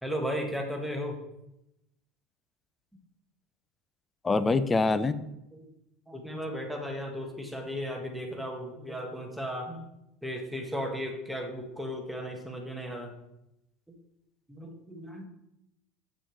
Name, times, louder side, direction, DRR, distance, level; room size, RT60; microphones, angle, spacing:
voice 1, 0.0-1.2 5.5-5.7 6.1-9.9 10.2-13.1 14.5-15.3, equal, ahead, 2 dB, 1.7 m, -35 dB
voice 2, 4.2-5.3, left 3 dB, 20° left, 12 dB, 0.6 m, -25 dB
7.9 x 6.2 x 3.2 m, 0.86 s
hypercardioid pair, 75°, 0 cm